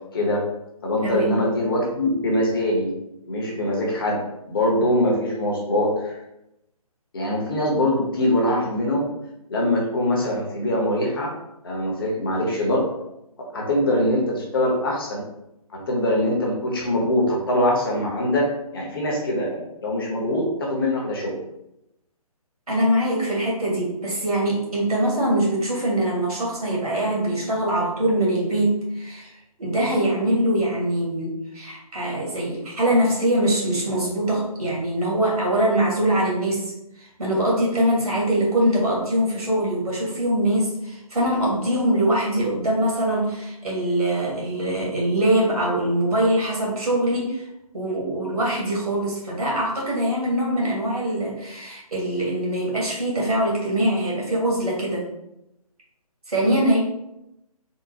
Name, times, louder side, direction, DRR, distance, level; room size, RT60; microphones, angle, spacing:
voice 1, 0.1-0.4 0.8-2.9 3.3-4.2 4.5-6.1 7.1-9.1 9.5-11.3 11.6-12.8 13.5-15.2 15.7-21.4, left 1 dB, 35° left, -2 dB, 0.8 m, -23 dB
voice 2, 1.0-1.4 22.7-36.7 37.0-47.4 47.7-55.1 56.3-56.8, right 1 dB, 70° right, -3 dB, 1.4 m, -23 dB
3.7 x 2.1 x 2.7 m, 0.86 s
figure-of-eight pair, 140°, 19 cm